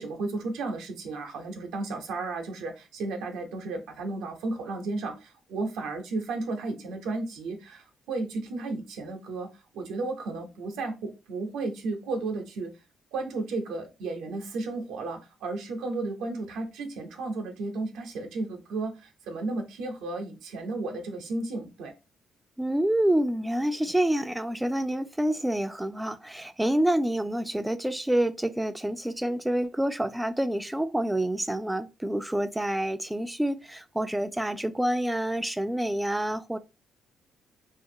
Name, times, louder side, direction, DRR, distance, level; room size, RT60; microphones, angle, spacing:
voice 1, 0.0-9.5 9.7-12.7 13.1-21.9, right 3 dB, 90° right, 0.7 m, -33 dB
voice 2, 22.6-36.6, right 1 dB, 5° right, 0.3 m, -27 dB
2.5 x 2.4 x 2.7 m
cardioid pair, 90°, 0 cm